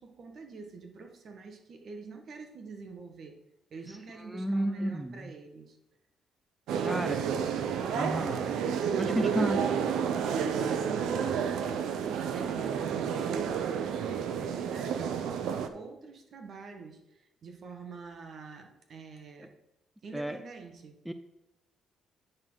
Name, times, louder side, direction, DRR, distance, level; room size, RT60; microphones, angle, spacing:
voice 1, 0.0-3.4 3.7-5.8 6.7-7.4 9.2-9.6 10.1-19.5 20.0-21.0, right 4 dB, 55° right, 4 dB, 1.4 m, -46 dB
voice 2, 4.3-5.2 6.8-7.2 7.9-8.5 9.0-9.6 20.1-20.4 21.1-21.2, right 1 dB, 5° right, 9 dB, 0.5 m, -31 dB
sound 1, 6.7-15.7, right 7 dB, 85° right, 0.7 m, -30 dB
9.6 x 3.9 x 6.2 m, 0.90 s
cardioid pair, 90°, 0 cm